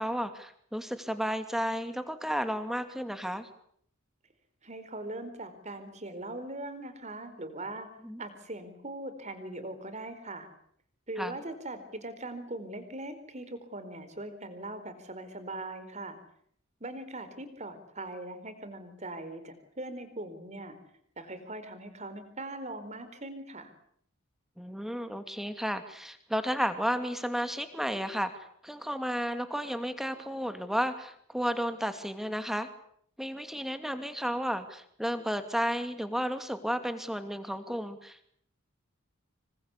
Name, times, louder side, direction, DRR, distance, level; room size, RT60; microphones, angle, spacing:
voice 1, 0.0-3.5 8.0-8.2 11.2-11.4 24.6-28.3 28.6-32.7 33.2-38.3, equal, ahead, 8 dB, 2.6 m, -32 dB
voice 2, 4.6-7.9 8.2-10.5 11.1-16.2 16.8-20.8 21.2-23.7, right 2 dB, 35° right, 11 dB, 4.5 m, -40 dB
27.0 x 25.0 x 8.4 m, 0.67 s
head